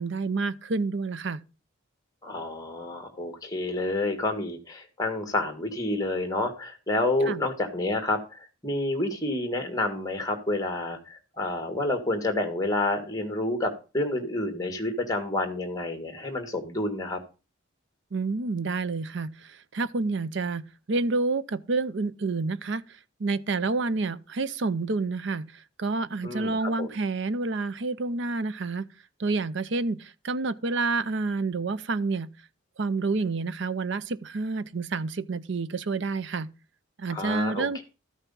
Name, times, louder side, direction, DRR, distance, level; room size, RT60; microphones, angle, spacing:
voice 1, 0.0-1.4 7.3-7.4 18.1-22.8 23.2-25.5 25.8-28.9 29.2-32.3 32.8-36.5 37.0-37.8, right 3 dB, 60° right, 0.6 m, -29 dB
voice 2, 2.2-17.2 26.2-26.9 37.1-37.8, left 2 dB, 15° left, 1.7 m, -29 dB
13.0 x 5.8 x 5.4 m
head